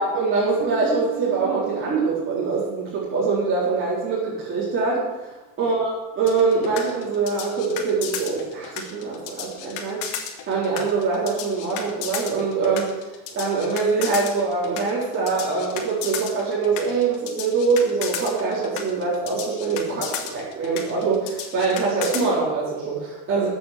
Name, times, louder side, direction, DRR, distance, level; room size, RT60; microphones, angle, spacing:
voice 1, 0.0-10.2 10.5-12.9 13.3-23.5, right 4 dB, 30° right, -8 dB, 4.3 m, -24 dB
Bass guitar, 0.6-3.6, right 10 dB, 80° right, 2.0 m, -38 dB
sound 1, 6.3-22.3, left 8 dB, 55° left, 2.3 m, -33 dB
12.5 x 8.2 x 6.8 m, 1.1 s
supercardioid pair, 115°, 43 cm